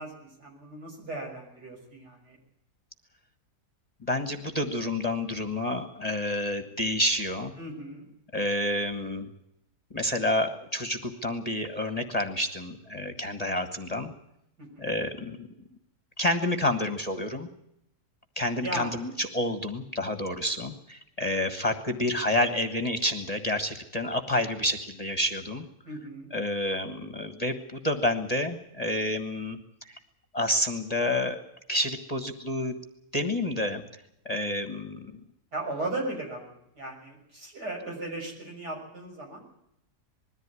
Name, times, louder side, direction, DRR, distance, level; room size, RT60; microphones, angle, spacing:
voice 1, 0.0-2.4 7.6-8.1 14.6-14.9 18.6-18.9 25.8-26.3 35.5-39.7, right 2 dB, 75° right, 0 dB, 7.2 m, -37 dB
voice 2, 4.0-7.5 8.3-9.3 9.9-14.1 14.8-15.5 16.2-17.5 18.4-25.7 26.3-30.0 30.3-31.4 31.7-32.8 33.1-35.1, left 1 dB, 25° left, 7 dB, 1.4 m, -29 dB
21.0 x 14.5 x 9.7 m, 0.80 s
omnidirectional pair, 1.8 m